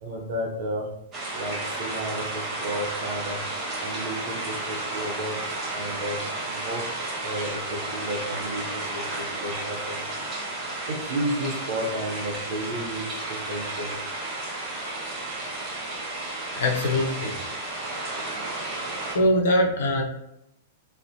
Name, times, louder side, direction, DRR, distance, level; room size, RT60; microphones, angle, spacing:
voice 1, 0.0-0.9 1.3-3.4 3.8-5.4 5.7-6.2 6.4-6.9 7.2-10.1 10.9-14.0, right 1 dB, 50° right, 1 dB, 0.5 m, -32 dB
sound 1, 1.1-19.2, right 2 dB, 25° right, 0.8 m, -32 dB
voice 2, 16.6-17.4 19.1-20.0, left 1 dB, 60° left, 0 dB, 0.5 m, -22 dB
2.4 x 2.0 x 2.6 m, 0.83 s
figure-of-eight pair, 100°, 0 cm